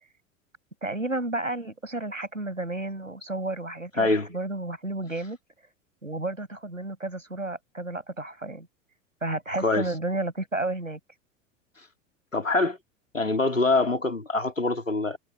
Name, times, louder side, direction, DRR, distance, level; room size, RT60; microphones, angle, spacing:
voice 1, 0.8-5.4 6.0-8.7 9.2-11.0, right 2 dB, 90° right, 8.0 m, -32 dB
voice 2, 4.0-4.3 9.6-9.9 12.3-12.8 13.1-15.2, left 3 dB, 85° left, 3.7 m, -24 dB
figure-of-eight pair, 85°, 38 cm